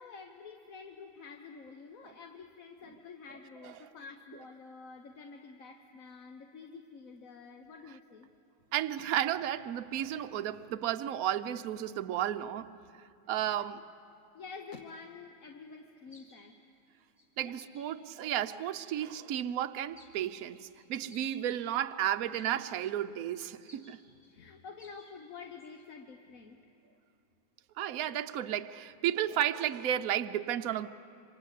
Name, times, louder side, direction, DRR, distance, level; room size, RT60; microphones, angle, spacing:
voice 1, 0.0-8.3 13.4-13.7 14.3-16.6 17.4-17.6 24.3-26.7, left 5 dB, 50° left, 1.4 m, -49 dB
voice 2, 8.7-12.7 13.3-13.8 17.4-24.0 27.8-30.9, right 11 dB, 60° right, 1.1 m, -33 dB
sound 1, 16.1-16.4 17.2-17.3 17.6-18.2 18.8-19.2 20.0-20.3 20.7-21.8 22.3-23.0 23.4-24.4 24.8-25.2 25.5-25.9, left 2 dB, 10° left, 4.5 m, -59 dB
27.5 x 25.5 x 8.3 m
omnidirectional pair, 2.0 m